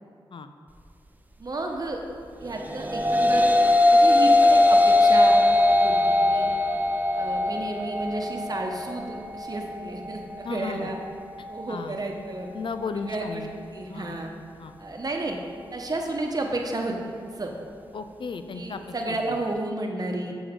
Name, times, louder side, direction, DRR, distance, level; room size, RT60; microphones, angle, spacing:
voice 1, 1.4-2.0 2.4-3.5 3.9-5.4 5.8-6.5 7.1-11.0 11.5-12.5 12.9-13.5 13.7-14.3 14.8-15.4 15.7-17.5 18.5-20.3, right 2 dB, 40° right, 2 dB, 1.0 m, -31 dB
sound 1, 2.6-11.7, left 2 dB, 20° right, 0.6 m, -21 dB
voice 2, 10.4-10.9 11.7-12.0 12.5-13.5 13.9-14.2 14.6-14.7 17.9-18.8 19.1-19.2, left 5 dB, 60° left, 9 dB, 0.5 m, -34 dB
7.0 x 6.8 x 3.7 m, 2.2 s
cardioid pair, 45°, 10 cm